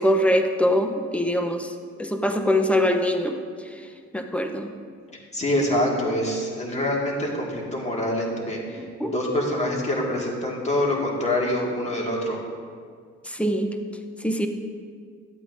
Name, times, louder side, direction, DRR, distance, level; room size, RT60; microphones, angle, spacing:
voice 1, 0.0-1.7 2.0-3.4 4.1-4.7 8.8-9.1 13.3-13.7 14.2-14.5, equal, 5° left, 5 dB, 0.7 m, -23 dB
voice 2, 5.3-8.8 9.1-12.4, left 1 dB, 20° left, -2 dB, 1.9 m, -25 dB
12.5 x 8.4 x 2.6 m, 2.1 s
cardioid pair, 90°, 30 cm